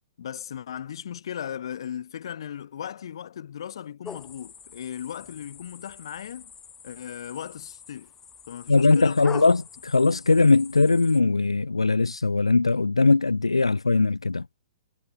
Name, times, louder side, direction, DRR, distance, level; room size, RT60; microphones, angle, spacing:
voice 1, 0.2-6.5 6.8-8.1 8.5-9.4, left 9 dB, 65° left, 3.5 m, -37 dB
sound 1, 4.0-11.2, left 6 dB, 15° left, 2.8 m, -44 dB
voice 2, 8.7-14.4, left 3 dB, 90° left, 1.7 m, -20 dB
figure-of-eight pair, 120°, 3 cm